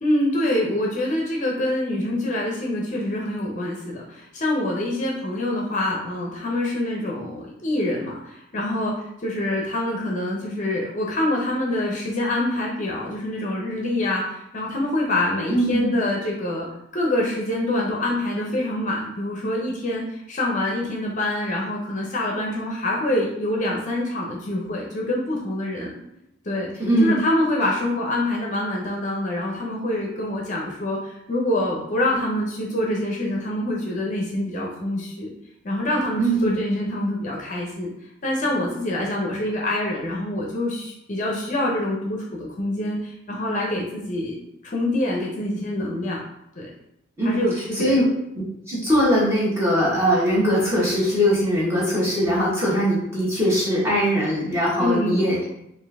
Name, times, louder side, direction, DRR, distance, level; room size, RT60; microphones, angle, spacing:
voice 1, 0.0-16.7 16.9-25.9 26.5-26.7 27.0-35.3 35.6-37.9 38.2-46.2 46.6-46.7 47.2-48.0 54.8-55.2, left 1 dB, 40° left, -2 dB, 0.6 m, -25 dB
voice 2, 15.5-15.9 26.8-27.2 36.2-36.6 47.2-48.1 48.7-55.4, equal, 15° right, -7 dB, 1.3 m, -21 dB
4.3 x 2.6 x 3.4 m, 0.82 s
head